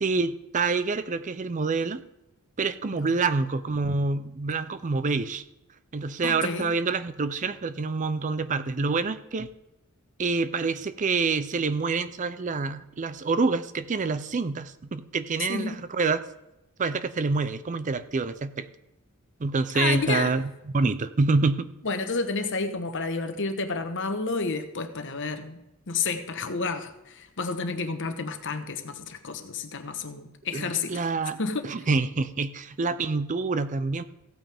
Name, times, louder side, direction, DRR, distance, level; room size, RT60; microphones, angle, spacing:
voice 1, 0.0-2.0 2.6-5.4 5.9-9.5 10.2-16.2 16.8-18.7 19.4-21.7 30.5-31.4 31.6-34.0, right 4 dB, 35° right, 13 dB, 0.5 m, -27 dB
voice 2, 6.2-6.7 15.4-15.8 19.7-20.4 21.8-25.6 25.9-31.1 31.4-31.7, left 4 dB, 55° left, 8 dB, 1.1 m, -30 dB
15.5 x 8.9 x 3.5 m, 0.92 s
head